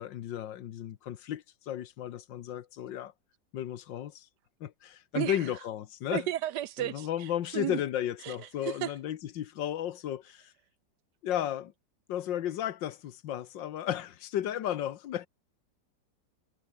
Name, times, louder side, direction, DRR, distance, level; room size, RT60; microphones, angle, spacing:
voice 1, 0.0-3.1 3.5-4.3 4.6-6.3 6.8-10.5 11.2-11.7 12.1-15.3, left 11 dB, 80° left, 1.7 m, -34 dB
voice 2, 6.1-7.8 8.2-8.4 8.6-8.9, right 13 dB, 70° right, 1.2 m, -33 dB
omnidirectional pair, 2.0 m